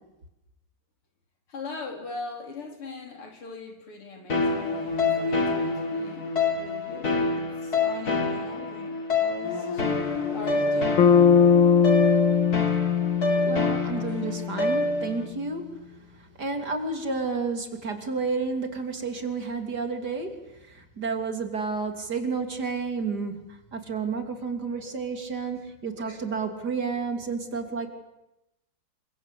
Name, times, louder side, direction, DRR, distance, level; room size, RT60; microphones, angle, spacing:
voice 1, 1.5-9.8 10.3-11.1, left 4 dB, 85° left, 3 dB, 4.9 m, -41 dB
sound 1, 4.3-15.3, left 3 dB, 45° left, 3.8 m, -27 dB
Bass guitar, 11.0-15.1, left 7 dB, 65° left, 1.9 m, -21 dB
voice 2, 13.4-15.8 16.4-20.4 20.7-27.9, right 4 dB, 50° right, 6 dB, 3.6 m, -31 dB
28.5 x 24.5 x 8.4 m, 0.92 s
omnidirectional pair, 2.4 m